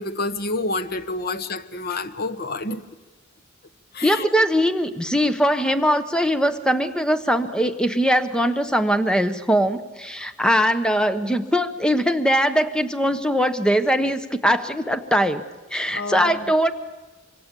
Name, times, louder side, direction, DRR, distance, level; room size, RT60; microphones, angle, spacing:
voice 1, 0.0-2.8 3.9-4.4 15.9-16.5, left 2 dB, 55° left, 1.2 m, -29 dB
voice 2, 4.0-15.4 15.7-16.7, equal, 5° left, 1.0 m, -21 dB
25.5 x 24.5 x 8.4 m
head